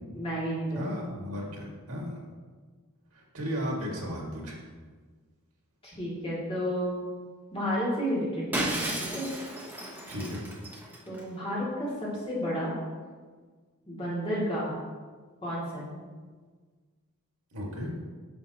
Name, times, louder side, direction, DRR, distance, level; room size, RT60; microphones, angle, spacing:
voice 1, 0.1-0.9 5.8-7.0 7.5-9.3 11.1-11.9 12.2-12.7 13.9-14.8 15.4-16.0, equal, 25° left, -7 dB, 2.2 m, -31 dB
voice 2, 0.7-2.2 3.1-4.6 10.1-10.4 17.5-17.9, equal, 85° right, -2 dB, 1.8 m, -35 dB
Shatter, 8.5-11.2, right 1 dB, 10° right, 0.9 m, -34 dB
9.1 x 6.2 x 2.9 m, 1.5 s
head